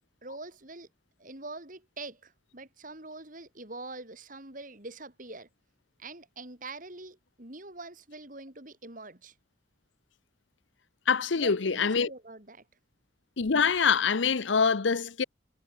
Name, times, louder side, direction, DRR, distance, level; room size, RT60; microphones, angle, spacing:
voice 1, 0.2-0.9 1.2-5.5 6.0-9.3 11.3-12.6, right 2 dB, 45° right, 4.9 m, -44 dB
voice 2, 11.1-12.1 13.4-15.2, left 5 dB, 85° left, 0.8 m, -25 dB
head